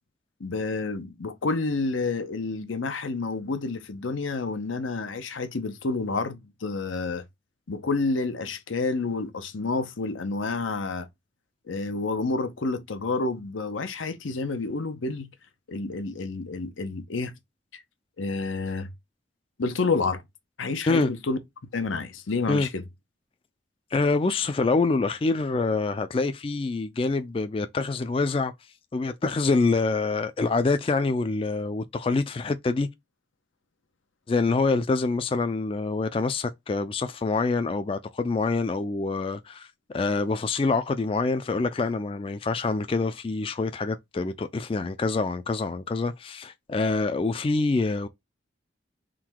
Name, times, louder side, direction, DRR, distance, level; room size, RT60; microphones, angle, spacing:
voice 1, 0.4-7.2 7.7-11.1 11.7-15.3 15.7-17.3 17.7-17.8 18.2-18.9 19.6-20.2 20.6-21.4 21.7-22.8, left 3 dB, 90° left, 0.7 m, -29 dB
voice 2, 23.9-28.5 28.9-32.9 34.3-39.7 39.9-48.1, left 3 dB, 30° left, 0.3 m, -26 dB
3.7 x 2.2 x 4.5 m
head